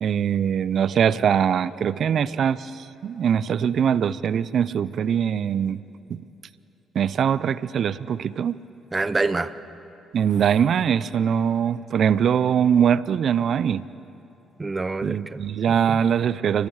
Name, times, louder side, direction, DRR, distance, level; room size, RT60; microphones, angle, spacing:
voice 1, 0.0-5.8 6.1-6.2 6.9-8.6 10.1-13.8 15.0-16.7, right 8 dB, 60° right, 18 dB, 0.6 m, -22 dB
voice 2, 8.9-9.5 14.6-16.0, right 3 dB, 25° right, 14 dB, 0.9 m, -27 dB
29.5 x 21.0 x 4.9 m, 2.9 s
hypercardioid pair, 55°, 0 cm